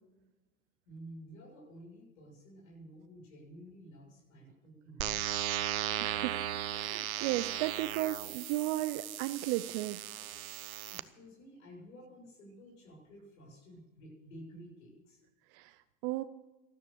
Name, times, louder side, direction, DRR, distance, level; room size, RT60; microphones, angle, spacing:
voice 1, 0.9-5.5 10.9-15.2, equal, 70° left, -2 dB, 7.1 m, -52 dB
sound 1, 5.0-11.0, right 12 dB, 90° right, 0.8 m, -36 dB
voice 2, 6.0-6.4 6.7-10.0 15.5-15.7 16.0-16.2, right 16 dB, 45° right, 11 dB, 0.7 m, -34 dB
13.5 x 12.5 x 6.8 m, 1.1 s
hypercardioid pair, 120°, 41 cm